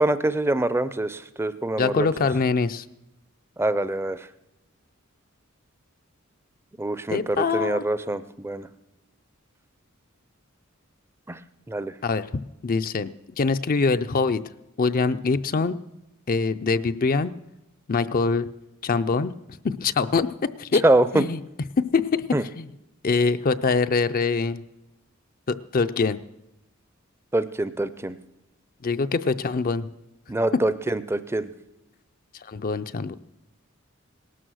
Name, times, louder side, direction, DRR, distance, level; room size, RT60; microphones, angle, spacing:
voice 1, 0.0-2.1 3.6-4.3 6.8-8.7 11.3-11.4 11.7-11.9 20.8-21.2 22.3-22.4 27.3-28.2 30.3-31.5, right 2 dB, 10° right, 14 dB, 0.5 m, -24 dB
voice 2, 1.8-2.8 7.1-7.8 12.0-13.1 13.4-14.4 14.8-15.8 16.3-17.3 17.9-18.5 18.8-19.3 19.6-20.8 21.1-21.4 21.8-22.2 22.6-22.7 23.0-24.6 25.5-26.2 28.8-29.9 32.5-33.1, left 4 dB, 45° left, 10 dB, 0.5 m, -24 dB
18.5 x 12.5 x 6.3 m, 0.92 s
head